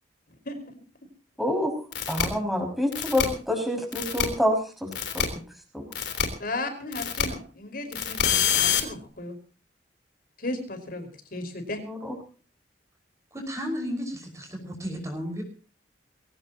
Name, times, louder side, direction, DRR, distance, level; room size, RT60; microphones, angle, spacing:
voice 1, 0.5-0.8 6.4-9.4 10.4-11.8, left 2 dB, 55° left, 7 dB, 5.0 m, -35 dB
voice 2, 1.4-1.7 2.1-5.2 5.7-5.8 11.9-12.1, left 1 dB, ahead, 2 dB, 5.9 m, -27 dB
sound 1, 1.9-2.2 2.9-3.2 3.9-4.2 4.9-5.2 5.9-6.2 6.9-7.2 7.9-8.8, left 8 dB, 90° left, 3.7 m, -25 dB
voice 3, 13.3-15.4, equal, 20° right, 3 dB, 5.6 m, -33 dB
23.0 x 17.5 x 3.0 m, 0.36 s
head